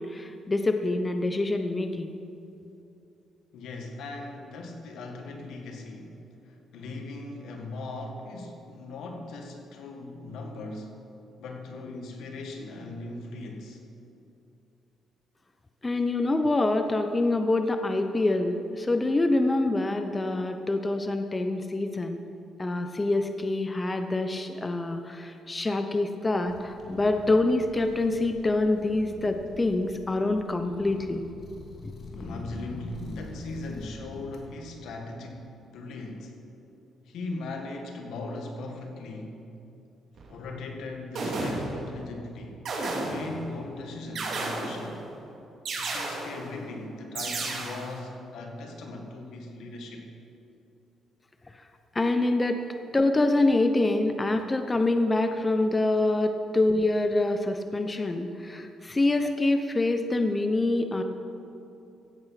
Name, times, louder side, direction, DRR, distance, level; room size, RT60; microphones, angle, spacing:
voice 1, 0.0-2.2 15.8-22.2 22.6-31.2 31.8-31.9 51.9-52.6 52.9-61.0, left 2 dB, 20° left, 7 dB, 0.8 m, -26 dB
voice 2, 3.5-6.1 6.4-10.9 11.4-13.8 32.1-36.4 37.1-39.4 40.3-45.0 45.8-50.1, left 2 dB, 80° left, 2 dB, 1.9 m, -39 dB
sound 1, 26.5-34.5, left 2 dB, 55° left, 2.2 m, -44 dB
sound 2, 40.2-40.3 41.1-41.9 42.6-43.4 44.1-45.0 45.6-46.5 47.1-48.0, right 2 dB, 60° right, 3.3 m, -32 dB
16.0 x 8.7 x 5.9 m, 2.8 s
cardioid pair, 90°, 0 cm